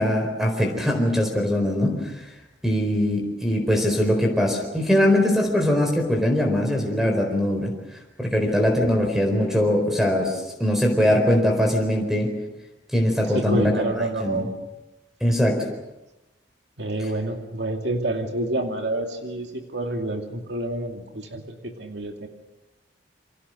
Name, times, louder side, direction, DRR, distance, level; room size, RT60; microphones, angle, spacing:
voice 1, 0.0-2.1 2.6-7.7 8.2-12.3 12.9-13.9 14.2-14.5 15.2-15.6, left 1 dB, ahead, 3 dB, 4.4 m, -21 dB
voice 2, 13.3-14.5 16.8-22.3, right 1 dB, 65° right, 3 dB, 2.5 m, -28 dB
28.5 x 25.0 x 6.5 m, 0.99 s
head